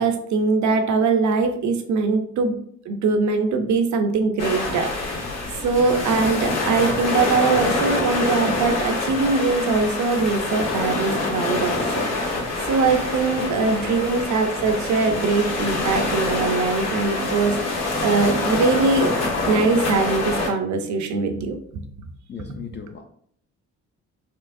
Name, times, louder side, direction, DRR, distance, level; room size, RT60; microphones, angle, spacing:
voice 1, 0.0-2.5 2.9-5.3 5.6-19.1 19.5-21.8, right 4 dB, 70° right, 6 dB, 0.7 m, -22 dB
sound 1, 4.4-20.5, left 2 dB, 60° left, 1.4 m, -25 dB
voice 2, 5.2-5.6 13.4-14.0 22.3-23.0, left 7 dB, 40° left, 4 dB, 0.4 m, -38 dB
4.5 x 2.9 x 2.6 m, 0.65 s
cardioid pair, 90°, 30 cm